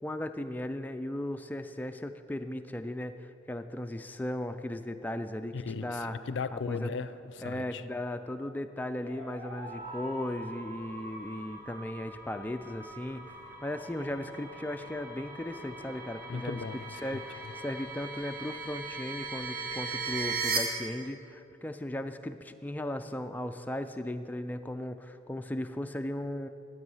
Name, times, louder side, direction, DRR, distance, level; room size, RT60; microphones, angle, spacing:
voice 1, 0.0-6.2 6.5-6.9 7.4-13.2 13.6-16.6 17.0-26.5, left 1 dB, 10° left, 8 dB, 0.3 m, -37 dB
voice 2, 5.5-7.8 16.2-17.5, left 4 dB, 70° left, 14 dB, 0.4 m, -37 dB
sound 1, 9.0-18.3, equal, 35° right, 3.1 m, -48 dB
sound 2, 9.6-20.6, right 4 dB, 55° right, 1.8 m, -40 dB
12.5 x 8.0 x 5.5 m, 2.8 s
head